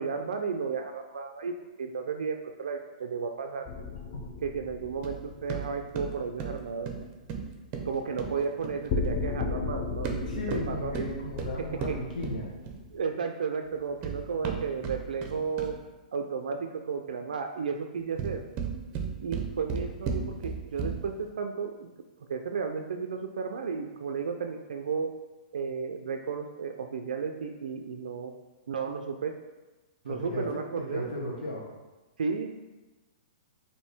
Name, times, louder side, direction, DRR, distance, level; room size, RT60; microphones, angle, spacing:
voice 1, 0.0-1.5 1.8-3.7 4.4-6.9 7.8-11.0 11.9-12.0 12.9-15.8 16.1-18.4 19.2-21.9 22.3-25.1 25.5-28.3 28.7-29.3 30.0-31.1 32.2-32.5, right 5 dB, 85° right, 4 dB, 0.3 m, -33 dB
sound 1, 3.7-6.4 8.9-13.0, left 4 dB, 35° left, 0.5 m, -36 dB
sound 2, 5.0-9.2 9.9-13.0 13.7-15.9 18.0-21.2, right 5 dB, 30° right, 0.5 m, -36 dB
voice 2, 10.3-12.5 30.0-30.6 30.9-31.7, left 1 dB, 85° left, -3 dB, 0.9 m, -35 dB
4.3 x 2.7 x 3.4 m, 1.2 s
hypercardioid pair, 140°, 4 cm